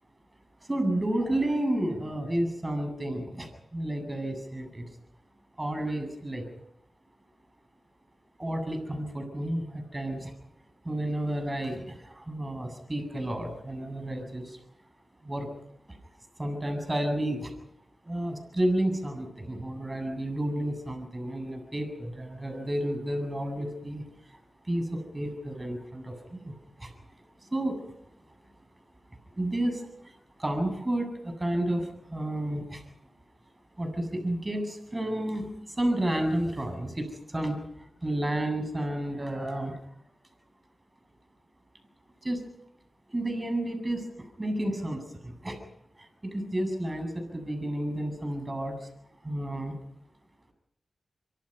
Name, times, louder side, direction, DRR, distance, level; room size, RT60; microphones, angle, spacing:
voice 1, 0.6-4.9 5.6-6.5 8.4-10.3 10.8-14.6 15.2-15.5 15.9-16.0 16.4-17.5 18.0-24.4 24.6-26.9 27.4-27.8 29.3-32.8 33.8-39.8 42.2-42.4 43.1-45.6 46.0-48.9 49.2-49.8, right 1 dB, 25° right, 7 dB, 7.9 m, -31 dB
25.5 x 25.5 x 5.7 m, 0.76 s
cardioid pair, 50°, 0 cm